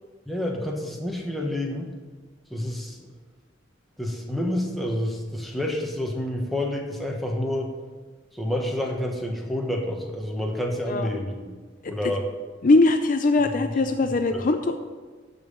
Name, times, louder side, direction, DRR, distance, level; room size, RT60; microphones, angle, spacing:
voice 1, 0.3-1.9 2.5-3.1 4.0-7.7 8.3-11.5 11.9-12.3 14.3-14.4, left 1 dB, ahead, -1 dB, 1.4 m, -28 dB
voice 2, 12.6-14.8, left 2 dB, 45° left, 7 dB, 0.5 m, -21 dB
13.0 x 5.5 x 5.6 m, 1.4 s
head